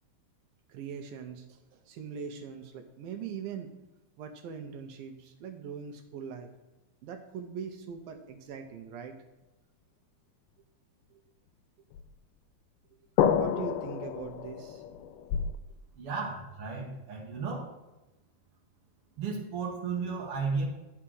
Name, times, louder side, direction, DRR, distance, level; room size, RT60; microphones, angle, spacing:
voice 1, 0.7-3.7 4.2-6.5 7.0-9.2 11.1-11.2 13.3-14.8, right 6 dB, 75° right, 5 dB, 2.4 m, -41 dB
sound 1, 11.9-12.0 13.2-15.5, left 8 dB, 90° left, 2.5 m, -29 dB
voice 2, 16.0-17.7 19.2-20.6, right 4 dB, 60° right, -2 dB, 1.6 m, -34 dB
10.0 x 5.8 x 6.2 m, 1.0 s
omnidirectional pair, 4.3 m